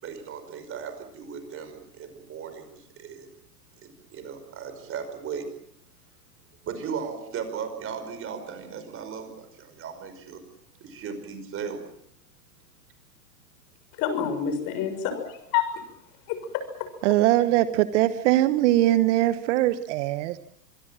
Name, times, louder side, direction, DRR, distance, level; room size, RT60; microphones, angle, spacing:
voice 1, 0.0-3.3 3.8-5.5 6.6-10.4 10.8-11.8, right 6 dB, 25° right, 8 dB, 5.4 m, -37 dB
voice 2, 14.0-15.7 16.3-16.9, left 8 dB, 40° left, 10 dB, 6.3 m, -28 dB
voice 3, 17.0-20.4, right 15 dB, 45° right, 13 dB, 1.2 m, -21 dB
25.5 x 23.5 x 7.5 m, 0.71 s
hypercardioid pair, 115°, 50 cm